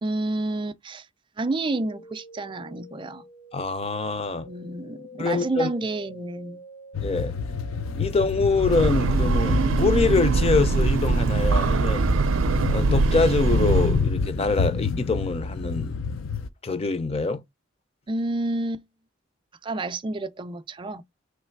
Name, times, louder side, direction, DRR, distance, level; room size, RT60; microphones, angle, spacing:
voice 1, 0.0-1.1 1.4-3.2 4.4-6.6 18.1-18.8 19.6-21.0, right 2 dB, 25° right, 0.4 m, -29 dB
sound 1, 1.8-10.1, left 2 dB, 70° left, 1.5 m, -47 dB
voice 2, 3.5-4.5 5.2-5.7 7.0-7.3 8.0-12.1 12.7-16.2 16.6-17.4, left 4 dB, 30° left, 0.5 m, -25 dB
sound 2, 6.9-16.5, left 4 dB, 90° left, 0.5 m, -29 dB
Breathing / Train, 8.4-14.2, right 4 dB, 85° right, 0.5 m, -22 dB
3.2 x 3.0 x 4.5 m
head